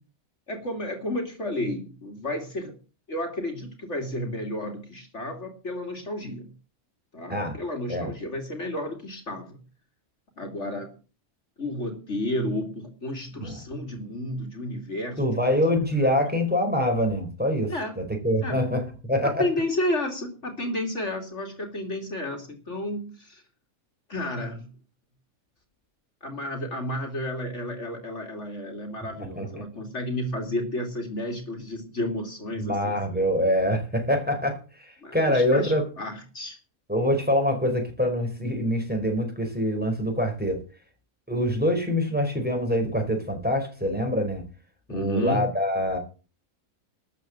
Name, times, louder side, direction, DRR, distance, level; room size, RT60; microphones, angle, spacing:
voice 1, 0.5-2.8 3.1-6.5 7.1-9.6 10.4-11.0 11.6-15.2 16.0-16.1 17.7-18.0 18.4-18.6 19.2-23.4 24.1-24.7 26.2-33.2 35.0-36.6 44.9-45.5, left 1 dB, 50° left, 2.8 m, -32 dB
voice 2, 15.2-17.7 18.0-19.4 29.4-29.5 32.6-35.8 36.9-40.6 41.3-44.4 44.9-46.0, equal, 5° right, 4.4 m, -25 dB
13.5 x 8.2 x 7.7 m
omnidirectional pair, 1.5 m